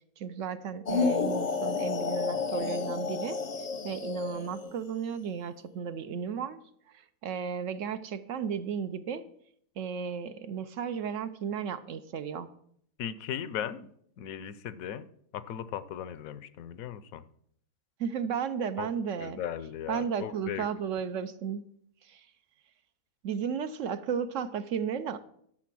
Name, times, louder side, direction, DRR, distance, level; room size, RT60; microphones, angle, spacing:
voice 1, 0.2-3.4 3.8-6.6 7.2-9.3 9.8-12.5 18.0-19.4 19.9-21.6 22.0-22.3 23.2-25.2, right 7 dB, 65° right, 12 dB, 0.9 m, -34 dB
sound 1, 0.9-4.8, left 4 dB, 40° left, 0.7 m, -31 dB
voice 2, 13.0-13.9 14.2-17.2 18.8-18.9 19.2-20.7, left 9 dB, 70° left, 15 dB, 1.0 m, -37 dB
11.5 x 6.7 x 6.0 m, 0.68 s
omnidirectional pair, 1.7 m